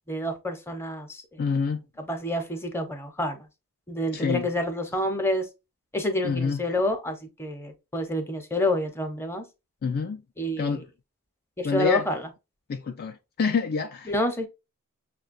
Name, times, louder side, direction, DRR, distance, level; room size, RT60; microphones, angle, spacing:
voice 1, 0.1-1.4 2.0-3.5 3.9-5.5 5.9-9.4 10.4-10.8 11.6-12.2 14.1-14.5, left 1 dB, 10° left, 0.7 m, -28 dB
voice 2, 1.4-1.8 4.1-4.5 6.2-6.6 9.8-10.2 10.6-10.8 11.6-12.1 12.7-14.1, left 5 dB, 45° left, 0.3 m, -27 dB
6.2 x 2.2 x 2.5 m
head